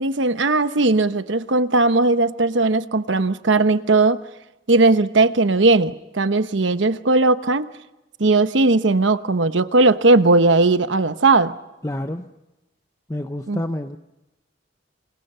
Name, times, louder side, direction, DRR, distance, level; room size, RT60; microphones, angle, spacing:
voice 1, 0.0-4.2 4.7-7.7 8.2-11.6 13.5-13.6, right 3 dB, 80° right, 11 dB, 1.0 m, -18 dB
voice 2, 11.8-12.2 13.1-14.0, left 1 dB, 15° left, 7 dB, 0.8 m, -28 dB
27.5 x 27.0 x 5.6 m, 0.99 s
head